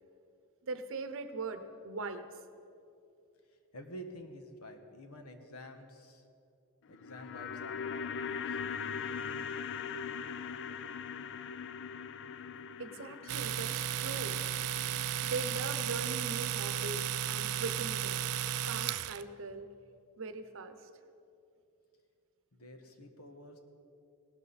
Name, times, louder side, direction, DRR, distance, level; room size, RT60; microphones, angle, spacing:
voice 1, 0.6-2.3 12.8-14.4 15.2-18.3 18.7-19.7 20.2-20.9, right 3 dB, 60° right, 10 dB, 0.8 m, -40 dB
voice 2, 3.7-6.2 6.9-8.6 22.5-23.6, equal, 75° left, 6 dB, 1.3 m, -49 dB
sound 1, 6.8-17.1 17.4-17.5, left 6 dB, 55° left, 0.4 m, -41 dB
Domestic sounds home sounds, 13.3-19.2, right 10 dB, 80° right, 0.4 m, -34 dB
17.5 x 12.5 x 4.2 m, 2.7 s
head